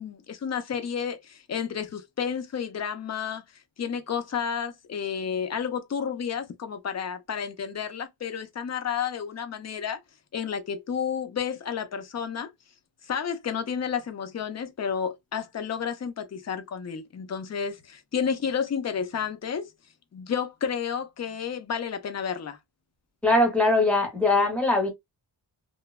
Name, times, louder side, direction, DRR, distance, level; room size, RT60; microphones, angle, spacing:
voice 1, 0.0-3.4 3.8-10.0 10.3-12.5 13.1-19.7 20.1-22.6, left 7 dB, 35° left, 0.5 m, -31 dB
voice 2, 23.2-24.9, left 2 dB, 5° left, 0.9 m, -21 dB
3.0 x 2.1 x 2.2 m
wide cardioid pair, 140°, 45 cm